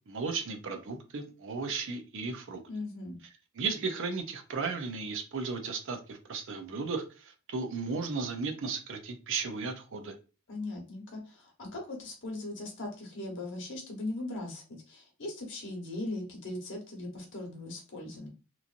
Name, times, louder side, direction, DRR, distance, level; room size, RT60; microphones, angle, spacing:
voice 1, 0.1-2.6 3.6-10.1, right 4 dB, 60° right, 5 dB, 0.5 m, -35 dB
voice 2, 2.7-3.2 10.5-18.3, left 2 dB, 60° left, 1 dB, 1.1 m, -39 dB
3.0 x 2.5 x 2.4 m, 0.33 s
head